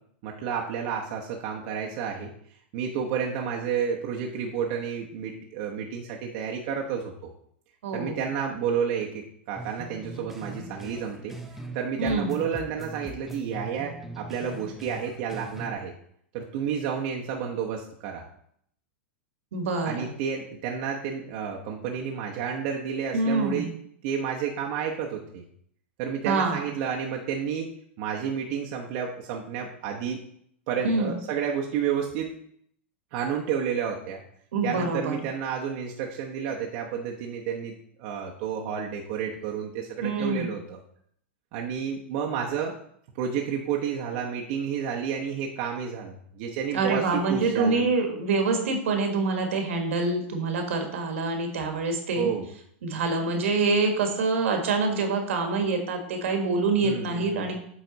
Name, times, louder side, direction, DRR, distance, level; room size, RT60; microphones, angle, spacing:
voice 1, 0.2-2.3 2.7-7.1 7.9-11.3 11.7-15.9 16.3-18.2 19.9-23.7 24.0-25.4 26.0-27.7 28.0-30.2 30.7-32.3 33.1-34.2 34.6-40.8 41.5-42.7 43.2-47.8 52.2-52.4 56.8-57.5, right 7 dB, 55° right, -1 dB, 1.0 m, -30 dB
voice 2, 7.8-8.2 12.0-12.4 19.5-20.1 23.1-23.7 26.2-26.6 30.8-31.1 34.5-35.2 40.0-40.5 46.7-52.3 52.8-57.5, right 3 dB, 80° right, 4 dB, 1.6 m, -26 dB
sound 1, 9.6-11.8 12.0-15.7, right 2 dB, 5° right, 0.7 m, -41 dB
8.0 x 4.1 x 4.0 m, 0.67 s
hypercardioid pair, 130°, 7 cm